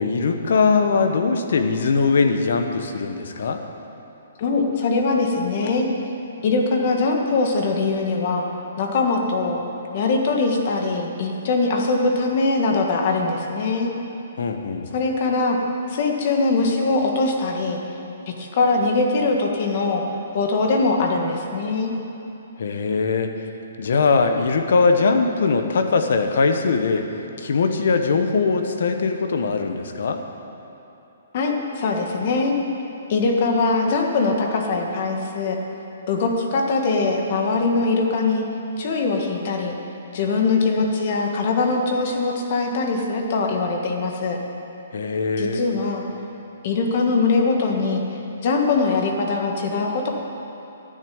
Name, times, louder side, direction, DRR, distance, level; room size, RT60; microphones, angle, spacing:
voice 1, 0.0-3.6 14.4-14.9 22.6-23.4 23.8-27.1 27.4-30.2 44.9-45.6, left 4 dB, 65° left, 6 dB, 1.1 m, -21 dB
voice 2, 4.4-5.9 6.4-8.4 8.8-9.6 9.9-13.9 14.9-15.6 15.9-17.8 18.3-20.0 20.3-21.9 31.3-32.5 33.1-35.6 36.1-38.4 38.8-39.7 40.1-44.4 45.4-46.0 46.6-48.0 48.4-50.1, left 3 dB, 45° left, 2 dB, 1.6 m, -22 dB
12.0 x 6.8 x 8.8 m, 2.9 s
hypercardioid pair, 160°, 0 cm